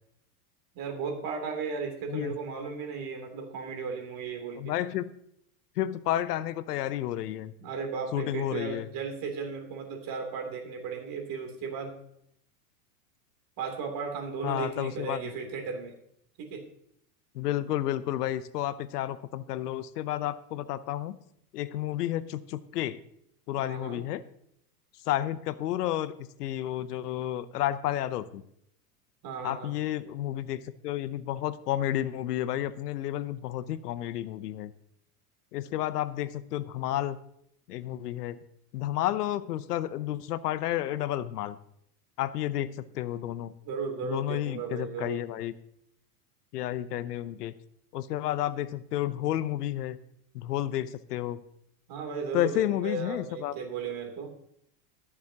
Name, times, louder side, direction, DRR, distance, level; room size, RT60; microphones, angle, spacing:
voice 1, 0.7-4.7 7.6-12.0 13.6-15.9 16.4-16.6 23.6-24.0 29.2-29.7 43.6-45.2 51.9-54.3, right 5 dB, 45° right, 3 dB, 3.1 m, -35 dB
voice 2, 4.6-5.1 5.8-7.5 8.1-8.9 14.4-15.3 17.3-21.2 21.5-23.0 23.5-24.2 25.0-28.4 29.4-34.7 35.5-37.2 37.7-38.4 38.7-41.6 42.2-43.5 44.0-45.5 46.5-47.5 47.9-50.0 50.3-51.4 52.3-53.5, left 13 dB, 80° left, 15 dB, 0.8 m, -31 dB
19.0 x 7.2 x 2.9 m, 0.72 s
hypercardioid pair, 110°, 47 cm